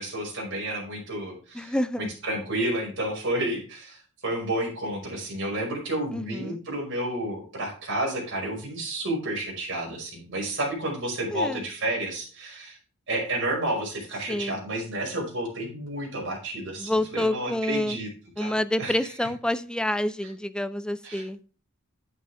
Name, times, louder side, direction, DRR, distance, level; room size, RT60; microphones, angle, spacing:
voice 1, 0.0-12.8 13.1-18.1 18.4-19.0 21.0-21.2, right 1 dB, 55° right, -1 dB, 5.3 m, -31 dB
voice 2, 1.5-2.1 6.1-6.6 11.3-11.7 14.3-14.6 16.8-18.0 18.4-21.4, left 1 dB, 5° left, 12 dB, 0.5 m, -28 dB
10.5 x 8.9 x 3.5 m, 0.38 s
head